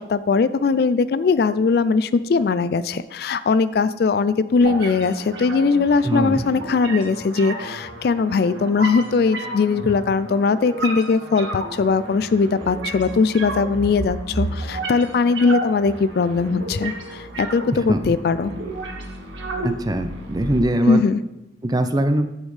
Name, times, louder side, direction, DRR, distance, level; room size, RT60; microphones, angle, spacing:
voice 1, 0.1-18.5 20.8-21.2, left 4 dB, 55° left, 15 dB, 0.3 m, -20 dB
sound 1, 4.6-20.6, right 2 dB, 90° right, 1.5 m, -32 dB
voice 2, 6.1-6.4 17.9-18.0 19.6-21.0 21.6-22.3, right 1 dB, 20° right, 8 dB, 0.5 m, -21 dB
9.7 x 7.1 x 3.3 m, 0.92 s
head